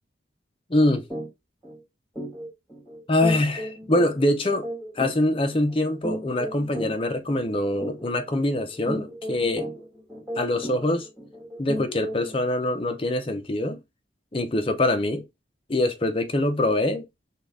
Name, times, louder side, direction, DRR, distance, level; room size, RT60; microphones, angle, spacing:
voice 1, 0.7-1.1 3.1-4.7 5.0-9.7 10.4-11.1 11.6-13.8 14.3-15.3 15.7-17.0, left 1 dB, 30° left, 0.6 m, -24 dB
sound 1, 1.1-1.3 1.6-1.8 2.1-12.4, equal, 5° left, 1.4 m, -36 dB
3.8 x 2.4 x 3.3 m
head